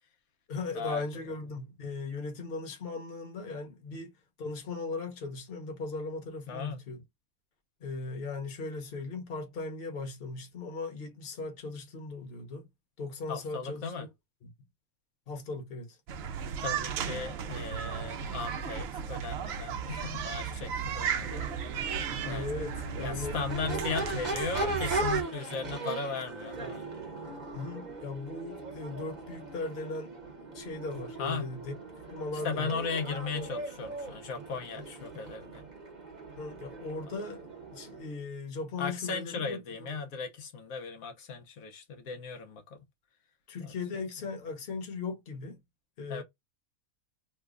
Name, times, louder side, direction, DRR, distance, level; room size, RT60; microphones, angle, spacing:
voice 1, 0.5-4.1 4.4-7.0 7.8-12.7 13.0-13.8 14.4-14.5 15.3-16.0 20.9-21.5 22.2-24.1 27.5-31.7 32.1-32.8 36.4-40.0 43.5-45.6 46.0-46.2, left 3 dB, 45° left, 1.1 m, -38 dB
voice 2, 6.5-6.8 13.3-14.1 16.6-21.5 22.2-22.6 23.0-26.9 31.2-31.5 32.4-35.6 38.8-42.8 43.6-43.7 46.1-46.2, left 5 dB, 80° left, 1.2 m, -37 dB
sound 1, 16.1-25.2, right 7 dB, 65° right, 0.7 m, -35 dB
Crowd / Race car auto racing / Accelerating revving vroom, 21.1-38.1, right 3 dB, 35° right, 0.9 m, -39 dB
3.1 x 2.2 x 3.5 m
omnidirectional pair, 1.5 m